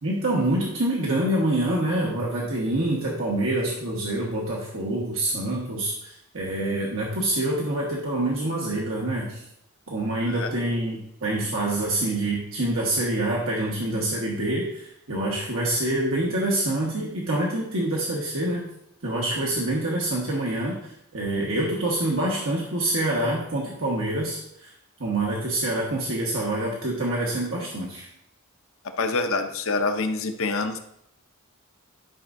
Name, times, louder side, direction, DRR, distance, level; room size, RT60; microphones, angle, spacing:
voice 1, 0.0-9.4 9.9-18.6 19.0-24.7 25.0-28.1, right 1 dB, 65° right, -3 dB, 1.4 m, -26 dB
voice 2, 29.0-30.8, left 3 dB, 65° left, 7 dB, 0.7 m, -26 dB
11.5 x 5.9 x 2.6 m, 0.76 s
head